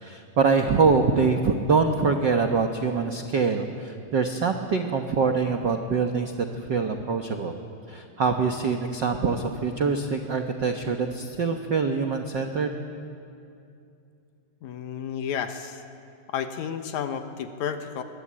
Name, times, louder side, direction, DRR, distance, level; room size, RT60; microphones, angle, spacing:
voice 1, 0.0-7.5 7.9-12.8, right 4 dB, 80° right, 4 dB, 1.0 m, -24 dB
voice 2, 14.6-15.8 16.3-18.0, left 8 dB, 70° left, 8 dB, 2.2 m, -31 dB
23.0 x 22.0 x 8.7 m, 2.5 s
omnidirectional pair, 3.8 m